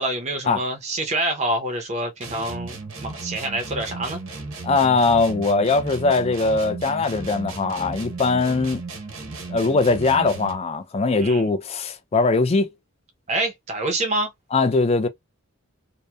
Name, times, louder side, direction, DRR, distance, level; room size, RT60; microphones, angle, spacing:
voice 1, 0.0-4.2 11.2-11.5 13.3-14.3, right 1 dB, 35° right, 0.5 m, -26 dB
sound 1, 2.2-10.7, right 3 dB, 80° right, 0.8 m, -35 dB
voice 2, 4.6-8.8 9.5-12.7 14.5-15.1, left 3 dB, 30° left, 0.4 m, -21 dB
2.8 x 2.1 x 2.2 m
head